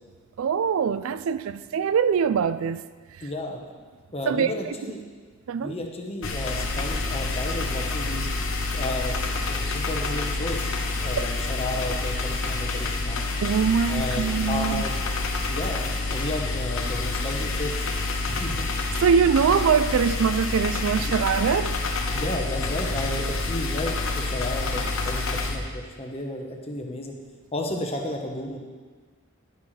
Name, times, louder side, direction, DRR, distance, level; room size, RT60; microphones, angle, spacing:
voice 1, 0.4-2.8 4.3-4.5 5.5-5.8 11.2-11.3 13.4-14.8 19.0-21.8, right 6 dB, 85° right, 0.4 m, -23 dB
voice 2, 3.2-3.6 4.1-5.1 5.6-8.3 8.7-13.2 13.9-14.9 15.5-17.9 18.3-18.6 21.0-21.1 22.1-27.1 27.5-28.6, left 1 dB, 30° left, 1.1 m, -33 dB
sound 1, 6.2-25.6, left 3 dB, 85° left, 1.0 m, -28 dB
10.5 x 9.8 x 3.3 m
head